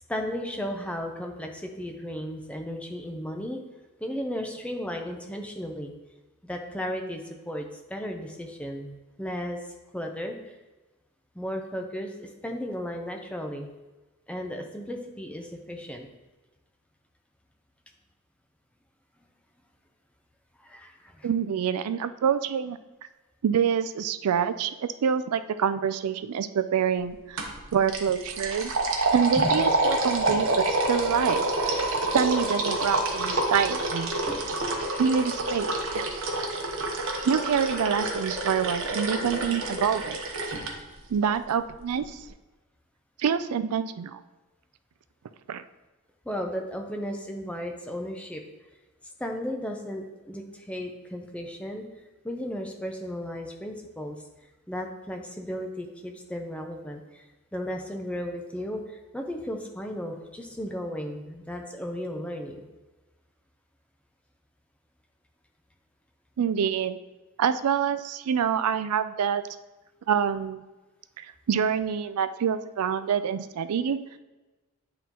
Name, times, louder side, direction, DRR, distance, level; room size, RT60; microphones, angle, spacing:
voice 1, 0.1-3.6 4.0-5.9 6.4-9.6 9.9-10.6 11.3-13.7 14.3-16.1 20.6-21.3 29.4-29.5 30.3-30.4 34.3-34.8 46.2-48.4 49.2-51.8 52.2-54.2 54.7-62.7, equal, 5° left, 2 dB, 0.6 m, -35 dB
voice 2, 21.2-22.8 23.4-28.7 29.1-31.4 32.1-34.1 35.0-36.0 37.2-40.2 41.1-42.3 43.2-44.2 45.5-45.6 66.4-67.0 67.4-69.4 70.1-70.6 71.2-74.0, right 7 dB, 90° right, 12 dB, 0.4 m, -26 dB
sound 1, 27.4-27.6 27.9-40.7, right 2 dB, 60° right, 0.9 m, -28 dB
9.2 x 3.8 x 2.9 m, 1.1 s
head